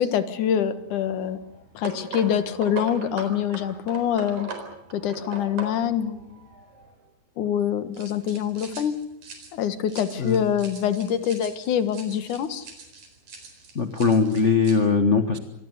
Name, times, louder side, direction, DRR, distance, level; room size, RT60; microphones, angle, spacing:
voice 1, 0.0-1.4 1.7-4.5 4.9-6.5 7.4-8.9 9.5-12.7, left 9 dB, 80° left, 12 dB, 3.0 m, -25 dB
sound 1, 0.8-7.0 7.9-14.8, right 4 dB, 75° right, 5.7 m, -41 dB
voice 2, 13.7-15.4, left 5 dB, 45° left, 9 dB, 0.9 m, -20 dB
27.0 x 20.0 x 8.2 m, 0.80 s
omnidirectional pair, 3.5 m